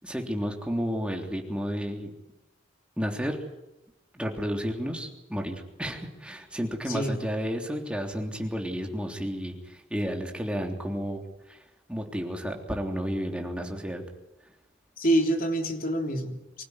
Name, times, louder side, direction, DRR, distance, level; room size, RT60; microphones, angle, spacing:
voice 1, 0.0-2.1 3.0-3.4 4.1-11.2 11.5-11.6 11.9-14.0, equal, 5° right, 2 dB, 3.3 m, -32 dB
voice 2, 6.9-7.2 15.0-16.6, right 1 dB, 45° left, 4 dB, 3.5 m, -27 dB
25.0 x 16.0 x 9.8 m, 0.93 s
head